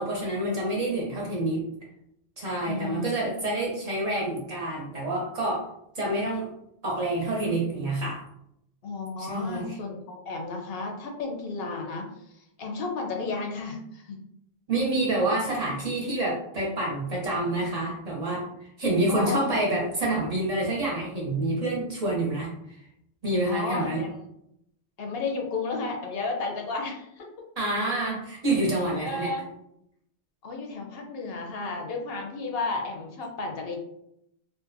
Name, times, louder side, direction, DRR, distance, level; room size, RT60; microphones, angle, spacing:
voice 1, 0.0-1.7 2.4-5.6 5.9-6.5 6.8-8.2 9.2-9.8 14.7-18.5 18.8-22.5 23.2-24.0 27.6-29.3, right 2 dB, 45° right, -4 dB, 0.6 m, -27 dB
voice 2, 2.6-3.6 8.8-14.2 19.1-19.5 23.5-24.2 25.0-27.5 29.0-29.5 30.4-33.8, left 3 dB, 70° left, 1 dB, 0.8 m, -33 dB
2.6 x 2.1 x 2.5 m, 0.77 s
omnidirectional pair, 1.1 m